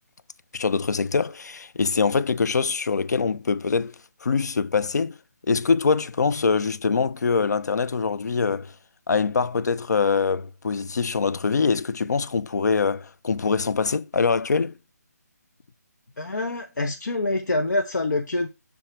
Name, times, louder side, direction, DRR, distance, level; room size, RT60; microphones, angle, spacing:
voice 1, 0.5-3.9 4.2-5.2 5.5-8.7 9.1-14.7, left 5 dB, 75° left, 0.4 m, -23 dB
voice 2, 16.2-18.5, left 2 dB, 90° left, 0.8 m, -26 dB
6.3 x 3.5 x 4.4 m
hypercardioid pair, 165°, 9 cm